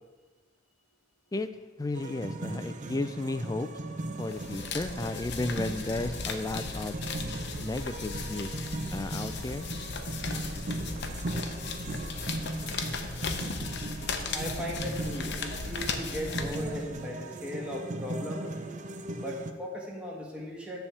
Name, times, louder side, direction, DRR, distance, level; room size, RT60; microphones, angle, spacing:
voice 1, 1.8-3.7 4.2-7.0 7.6-8.5 8.9-9.7, left 2 dB, 20° left, 11 dB, 0.3 m, -33 dB
sound 1, 1.9-19.5, right 2 dB, 40° right, 0.5 m, -38 dB
sound 2, 4.2-17.1, left 4 dB, 60° left, 0.7 m, -37 dB
voice 2, 14.3-18.5 19.2-20.8, equal, 5° right, -3 dB, 1.3 m, -38 dB
9.6 x 3.5 x 7.0 m, 1.3 s
head